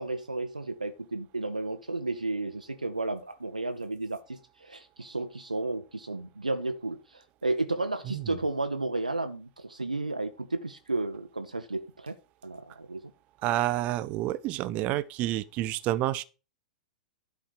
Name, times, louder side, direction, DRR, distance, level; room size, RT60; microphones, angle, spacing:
voice 1, 0.0-12.2 12.4-13.0, right 2 dB, 90° right, 1.0 m, -33 dB
voice 2, 13.4-16.2, right 14 dB, 35° right, 0.8 m, -29 dB
11.5 x 4.9 x 6.5 m
figure-of-eight pair, 105°, 4 cm